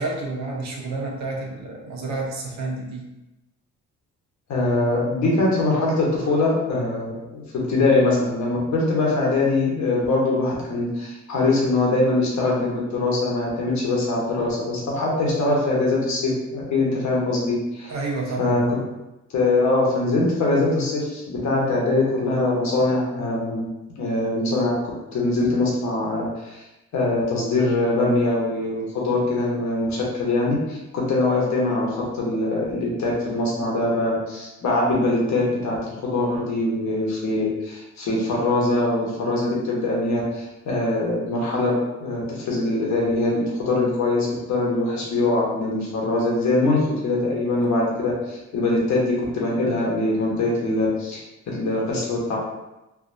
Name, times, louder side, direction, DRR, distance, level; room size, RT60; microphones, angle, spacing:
voice 1, 0.0-3.1 17.9-18.8, right 3 dB, 65° right, -1 dB, 0.8 m, -30 dB
voice 2, 4.5-17.9 18.4-18.8 19.3-23.7 24.0-24.7 25.1-26.6 26.9-51.2 51.5-52.4, left 2 dB, 65° left, -3 dB, 1.1 m, -22 dB
3.4 x 2.5 x 2.6 m, 0.97 s
cardioid pair, 90°, 30 cm